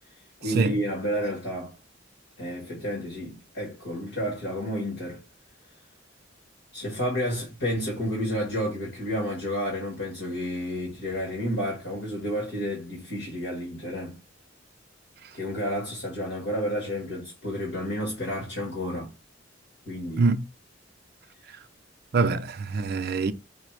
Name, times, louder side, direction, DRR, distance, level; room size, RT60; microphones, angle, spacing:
voice 1, 0.4-1.7 2.4-5.2 6.7-14.2 15.3-19.1 19.8-20.3, equal, 65° left, 1.7 m, -31 dB
voice 2, 22.1-23.3, right 3 dB, 55° right, 0.5 m, -24 dB
5.0 x 2.3 x 4.7 m
head